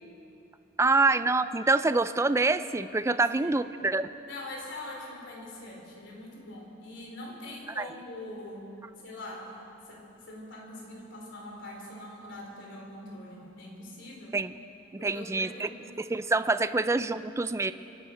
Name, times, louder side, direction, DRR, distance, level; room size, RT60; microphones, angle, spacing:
voice 1, 0.8-4.1 7.8-7.9 14.3-14.5 14.9-15.7 16.0-17.7, right 3 dB, 15° right, 13 dB, 0.4 m, -26 dB
voice 2, 3.1-3.6 4.3-9.6 9.9-14.4 15.0-15.8 16.6-16.7, left 1 dB, 65° left, -1 dB, 3.7 m, -43 dB
28.0 x 11.5 x 4.4 m, 2.9 s
head